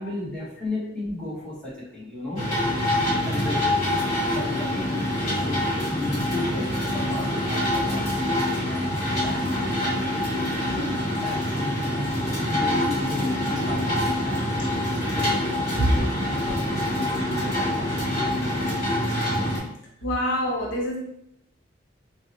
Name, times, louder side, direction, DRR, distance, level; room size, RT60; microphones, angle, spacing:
voice 1, 0.0-2.5 3.3-5.6 5.9-8.9 9.2-10.4 11.2-14.7 15.1-15.9 16.3-19.1, left 1 dB, 5° left, -9 dB, 1.1 m, -34 dB
sound 1, 2.4-19.6, left 1 dB, 30° left, 1.5 m, -25 dB
voice 2, 10.7-11.0 14.6-14.9 15.8-16.1 20.0-21.0, equal, 65° left, -3 dB, 0.8 m, -26 dB
4.4 x 2.1 x 2.8 m, 0.75 s
head